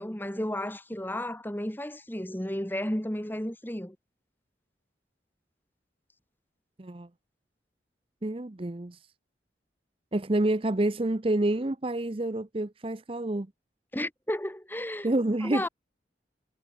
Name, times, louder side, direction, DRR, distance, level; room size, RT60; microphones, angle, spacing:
voice 1, 0.0-3.9 13.9-15.1 15.4-15.7, left 1 dB, 10° left, 1.6 m, -33 dB
voice 2, 8.2-9.0 10.1-13.5 15.0-15.7, right 1 dB, 30° right, 0.7 m, -28 dB
head